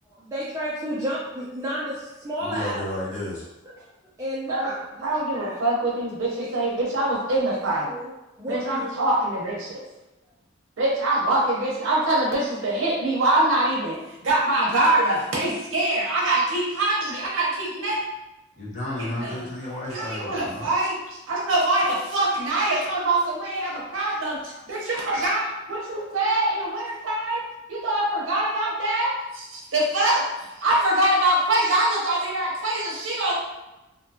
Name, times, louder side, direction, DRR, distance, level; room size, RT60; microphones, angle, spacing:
voice 1, 0.1-2.9 3.6-3.8 4.2-5.6 6.4-6.5 6.8-6.9 7.4-8.1 8.4-9.0, equal, 15° right, -9 dB, 0.5 m, -32 dB
voice 2, 2.4-3.5 18.6-20.7, left 1 dB, 40° left, -7 dB, 0.7 m, -32 dB
voice 3, 5.0-7.9 8.5-9.8 10.8-14.0 14.2-18.0 19.0-19.5 19.9-21.0 21.3-27.4 27.7-30.3 30.6-33.3, right 1 dB, 90° right, -4 dB, 0.6 m, -24 dB
2.6 x 2.2 x 2.6 m, 1.0 s
head